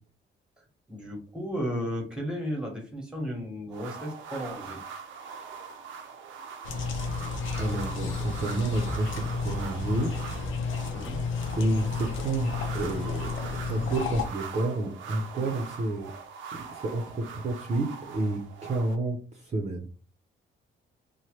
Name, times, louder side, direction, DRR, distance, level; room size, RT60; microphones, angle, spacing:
voice 1, 0.9-4.8 10.9-11.2 15.4-15.5, equal, 5° right, 1 dB, 1.2 m, -34 dB
sound 1, 3.7-19.0, right 6 dB, 75° right, 0.6 m, -42 dB
sound 2, 6.6-14.3, left 4 dB, 75° left, 0.6 m, -32 dB
voice 2, 7.6-10.1 11.6-16.1 16.5-19.9, right 2 dB, 35° right, 0 dB, 0.7 m, -30 dB
2.9 x 2.2 x 3.1 m, 0.37 s
cardioid pair, 90°, 20 cm